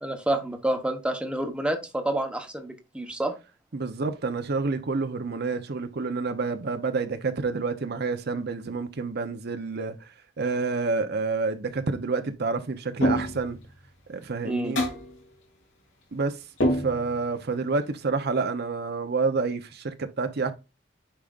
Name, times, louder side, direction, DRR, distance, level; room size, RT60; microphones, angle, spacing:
voice 1, 0.0-3.3 14.4-14.7, right 1 dB, 5° right, 1.0 m, -28 dB
voice 2, 3.7-9.9 10.4-13.6 14.1-14.8 16.1-16.4 16.7-20.5, right 4 dB, 55° right, 0.7 m, -28 dB
sound 1, 13.0-13.6 14.8-15.2 16.6-17.3, equal, 75° left, 3.0 m, -25 dB
8.8 x 4.9 x 2.4 m
head